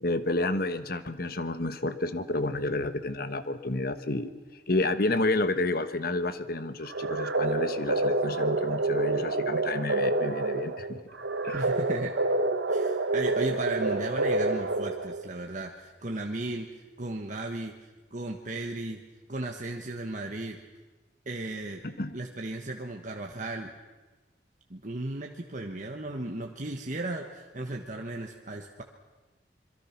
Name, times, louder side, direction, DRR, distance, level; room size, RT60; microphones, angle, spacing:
voice 1, 0.0-4.3 4.7-11.0 11.4-11.6 21.8-22.1, left 2 dB, 55° left, 10 dB, 1.4 m, -30 dB
sound 1, 6.9-15.3, right 2 dB, 85° right, 1.3 m, -28 dB
voice 2, 11.5-12.1 12.7-17.7 18.1-19.0 19.3-20.6 21.2-21.8 22.1-23.7 24.7-28.8, right 2 dB, 45° right, 2 dB, 1.4 m, -35 dB
26.5 x 23.0 x 6.0 m, 1.2 s
head